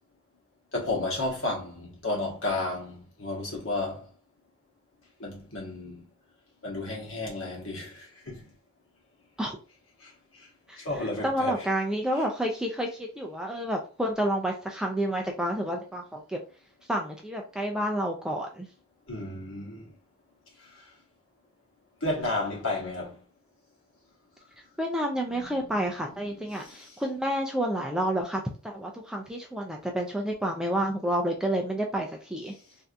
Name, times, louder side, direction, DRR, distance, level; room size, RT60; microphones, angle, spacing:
voice 1, 0.7-4.1 5.2-6.0 6.6-8.5 10.0-10.5 10.8-11.7 12.1-12.2 19.1-19.9 22.0-23.2 25.3-26.9, left 2 dB, 70° left, 1.3 m, -33 dB
voice 2, 11.2-16.4 16.9-18.7 24.8-32.5, right 1 dB, 5° right, 0.4 m, -29 dB
3.3 x 2.7 x 2.4 m
head